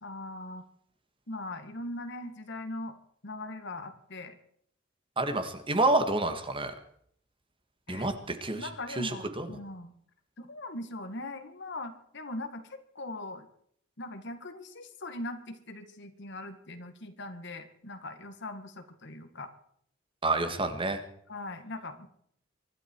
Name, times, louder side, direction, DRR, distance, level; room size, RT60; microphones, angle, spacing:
voice 1, 0.0-0.6 1.3-3.0 3.2-4.4 7.9-8.1 8.6-9.9 10.4-13.5 14.0-19.5 21.3-22.1, left 2 dB, 60° left, 8 dB, 1.9 m, -40 dB
voice 2, 5.2-6.7 7.9-8.7 9.0-9.5 20.2-21.0, right 2 dB, 25° right, 7 dB, 1.8 m, -28 dB
24.5 x 12.0 x 4.7 m, 0.66 s
head